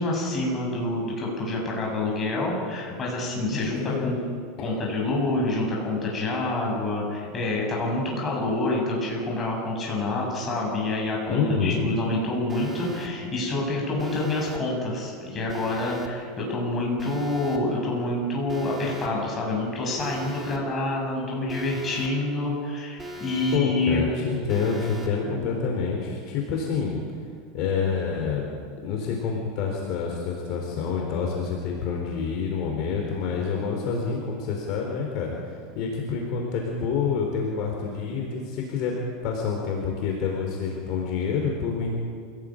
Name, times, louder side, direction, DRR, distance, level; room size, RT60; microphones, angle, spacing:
voice 1, 0.0-4.2 4.6-24.0 25.3-25.5, left 2 dB, 20° left, -2 dB, 7.7 m, -27 dB
voice 2, 3.5-4.1 4.6-4.7 11.3-11.9 23.5-27.0 27.5-28.5 28.8-39.0 39.2-41.9, left 5 dB, 45° left, 0 dB, 4.2 m, -27 dB
Alarm, 12.5-13.1 14.0-14.6 15.5-16.1 17.0-17.6 18.5-19.1 20.0-20.6 21.5-22.1 23.0-23.6 24.5-25.1, right 1 dB, 15° right, 3.1 m, -39 dB
27.5 x 18.5 x 9.0 m, 2.1 s
supercardioid pair, 165°, 0 cm